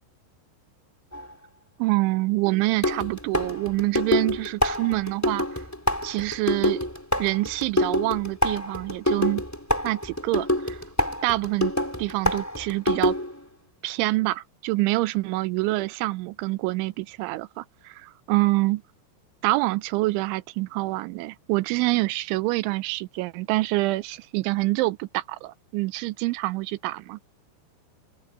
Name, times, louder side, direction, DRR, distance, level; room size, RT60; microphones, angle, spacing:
sound 1, 1.1-1.3 2.8-13.4, left 1 dB, 5° left, 3.4 m, -26 dB
voice 1, 1.8-5.6 6.0-6.9 7.2-9.4 9.8-10.8 11.2-11.7 12.0-13.1 13.8-18.8 19.4-27.2, right 20 dB, 80° right, 3.1 m, -26 dB
open air
omnidirectional pair, 5.5 m